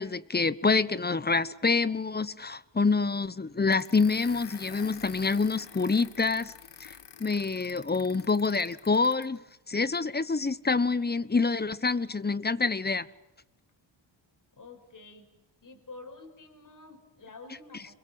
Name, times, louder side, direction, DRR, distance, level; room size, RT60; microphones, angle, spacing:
voice 1, 0.0-6.5 6.8-6.9 7.2-9.4 9.7-13.1, left 4 dB, 20° left, 1.1 m, -26 dB
sound 1, 3.7-9.4, left 8 dB, 60° left, 1.9 m, -48 dB
voice 2, 14.6-15.3 15.6-18.0, left 3 dB, 40° left, 5.6 m, -48 dB
26.5 x 23.0 x 7.8 m
cardioid pair, 75°, 46 cm